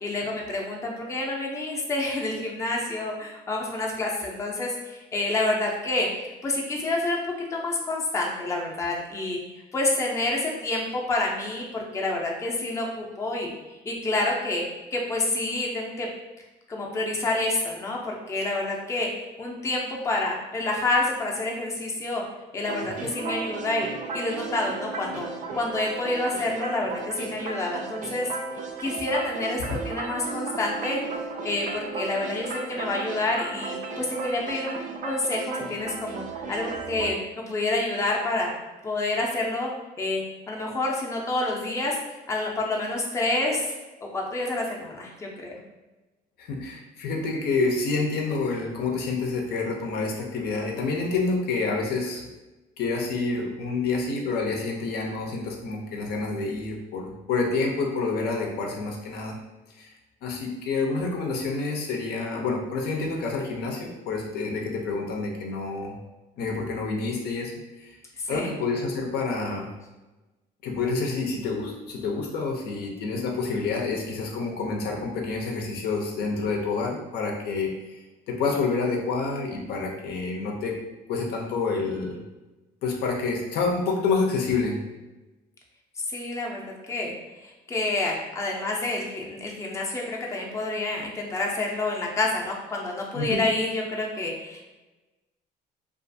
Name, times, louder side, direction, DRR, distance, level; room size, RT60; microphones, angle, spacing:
voice 1, 0.0-6.1 6.4-9.4 9.7-13.5 13.9-14.6 14.9-16.1 16.7-19.1 19.4-22.2 22.5-25.3 25.6-28.3 28.8-31.0 31.4-38.5 38.8-39.7 40.0-42.0 42.3-43.7 44.1-45.5 68.2-68.5 86.1-86.6 86.9-87.1 87.4-94.6, left 2 dB, 15° left, -2 dB, 0.5 m, -28 dB
sound 1, 22.7-37.1, right 4 dB, 50° right, 0.4 m, -35 dB
voice 2, 46.4-52.2 52.8-59.4 59.7-59.9 60.2-66.0 66.4-67.5 67.8-68.0 68.3-69.7 70.6-78.0 78.3-80.8 81.1-82.2 82.8-84.8 93.1-93.5, left 4 dB, 70° left, 0 dB, 0.5 m, -28 dB
2.4 x 2.4 x 2.6 m, 1.1 s
cardioid pair, 110°, 17 cm